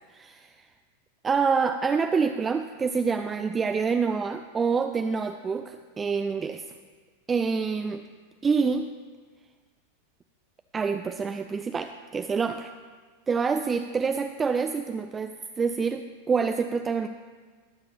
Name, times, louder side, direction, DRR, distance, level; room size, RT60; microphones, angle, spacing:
voice 1, 0.1-0.7 1.2-6.7 7.3-8.0 8.4-8.9 10.7-12.7 13.3-17.1, right 5 dB, 20° right, 9 dB, 0.4 m, -27 dB
21.5 x 7.6 x 2.8 m, 1.5 s
figure-of-eight pair, 90°, 0 cm